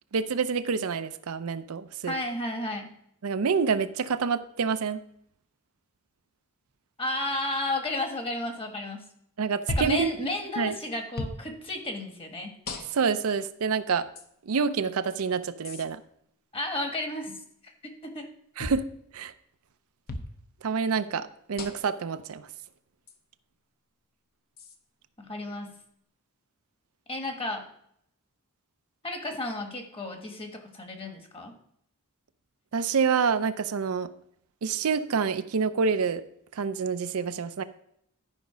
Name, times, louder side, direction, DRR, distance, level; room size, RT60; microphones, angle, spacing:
voice 1, 0.1-2.1 3.2-5.0 9.4-10.3 10.6-10.7 12.9-14.1 14.4-16.0 18.6-18.8 19.1-19.3 20.6-22.5 32.7-34.1 34.6-36.2 36.5-37.6, right 5 dB, 75° right, 11 dB, 0.5 m, -27 dB
voice 2, 2.1-2.9 7.0-9.0 9.7-12.5 16.5-18.3 25.2-25.7 27.1-27.6 29.0-31.5, left 1 dB, 25° left, 3 dB, 1.4 m, -33 dB
sound 1, 9.7-10.1 11.2-11.4 12.7-13.2 14.2-14.3 15.6-15.8 18.6-18.9 20.1-20.3 21.6-22.0 23.1-23.2 24.6-24.8, left 1 dB, 45° left, 0.9 m, -35 dB
11.5 x 5.1 x 5.0 m, 0.71 s
head